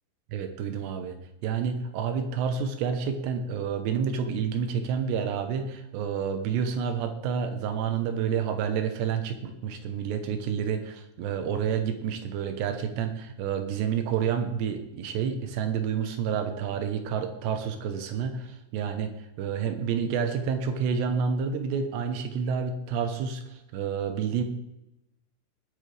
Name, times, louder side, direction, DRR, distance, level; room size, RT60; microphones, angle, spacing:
voice 1, 0.3-1.2 1.4-24.4, right 7 dB, 80° right, 7 dB, 3.2 m, -29 dB
20.0 x 8.9 x 3.4 m, 0.90 s
omnidirectional pair, 5.0 m